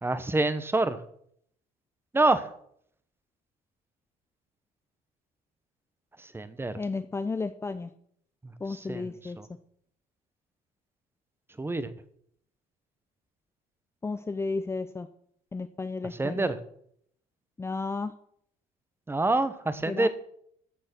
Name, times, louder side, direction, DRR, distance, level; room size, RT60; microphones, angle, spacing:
voice 1, 0.0-1.0 2.1-2.5 6.2-6.8 8.4-9.1 9.4-9.5 11.6-11.9 16.2-16.6 19.1-20.1, right 2 dB, 15° right, 13 dB, 1.0 m, -27 dB
voice 2, 6.8-7.9 8.6-9.4 14.0-15.1 15.5-16.5 17.6-18.1 19.9-20.1, left 3 dB, 15° left, 10 dB, 0.5 m, -33 dB
13.5 x 6.4 x 6.1 m, 0.67 s
cardioid pair, 110°, 17 cm